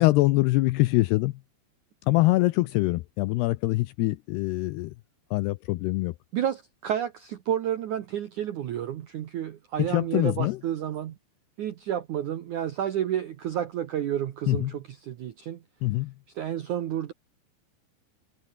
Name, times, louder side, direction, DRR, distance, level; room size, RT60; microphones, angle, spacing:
voice 1, 0.0-1.3 2.1-4.9 5.3-6.1 9.9-10.6 14.5-14.7 15.8-16.1, left 20 dB, 80° left, 2.4 m, -24 dB
voice 2, 6.3-11.2 11.6-15.6 16.4-17.1, right 10 dB, 75° right, 1.8 m, -30 dB
omnidirectional pair, 5.3 m